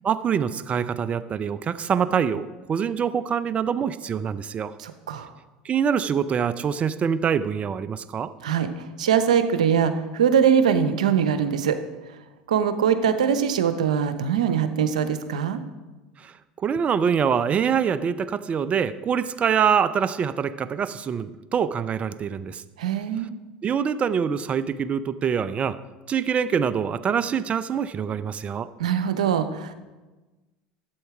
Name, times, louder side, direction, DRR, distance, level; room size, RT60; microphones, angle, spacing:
voice 1, 0.0-4.7 5.6-8.3 16.2-16.3 16.6-22.6 23.6-25.8 26.1-28.7, right 7 dB, 35° right, 14 dB, 0.6 m, -25 dB
voice 2, 4.8-5.3 8.4-11.8 12.5-15.6 22.8-23.3 28.8-29.7, right 7 dB, 90° right, 10 dB, 0.8 m, -22 dB
11.5 x 8.3 x 4.9 m, 1.2 s
hypercardioid pair, 90°, 4 cm